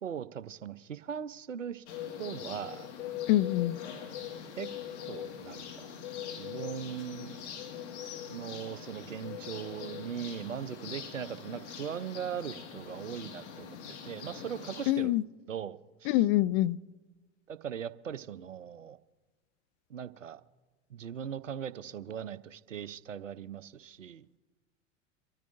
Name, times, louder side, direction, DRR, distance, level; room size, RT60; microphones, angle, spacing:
voice 1, 0.0-1.8 2.2-2.9 4.6-4.7 5.1-5.9 6.3-7.4 8.3-15.2 15.5-16.2 17.5-19.0 19.9-20.4 20.9-24.3, right 8 dB, 90° right, 0.6 m, -39 dB
sound 1, 1.9-14.9, left 9 dB, 65° left, 1.9 m, -42 dB
voice 2, 3.3-3.8 14.9-15.2 16.1-16.8, left 15 dB, 45° left, 0.5 m, -25 dB
26.0 x 13.5 x 2.6 m
figure-of-eight pair, 85°, 37 cm